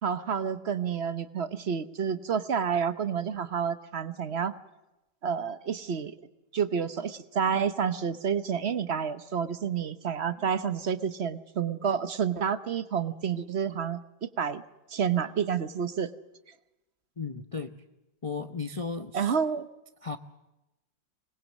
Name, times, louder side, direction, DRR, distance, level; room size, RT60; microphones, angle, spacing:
voice 1, 0.0-4.5 5.2-6.2 6.5-14.6 14.9-16.1 19.1-19.7, right 7 dB, 45° right, 13 dB, 0.9 m, -29 dB
voice 2, 17.2-17.8 18.2-19.3 20.0-20.2, left 4 dB, 45° left, 8 dB, 0.4 m, -35 dB
25.5 x 20.5 x 7.4 m, 0.97 s
omnidirectional pair, 2.2 m